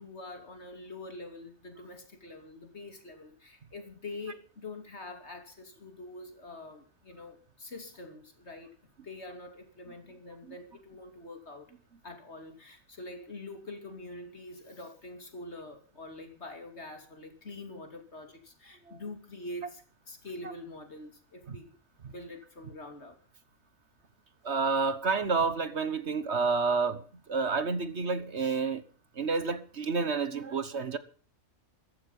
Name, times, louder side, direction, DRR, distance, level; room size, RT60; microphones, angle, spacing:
voice 1, 0.0-11.7 12.0-21.7 22.0-23.2, left 2 dB, 50° left, 3.2 m, -45 dB
voice 2, 24.4-27.0 27.3-28.8 29.2-31.0, right 4 dB, 55° right, 1.5 m, -29 dB
14.5 x 14.0 x 5.4 m
omnidirectional pair, 1.5 m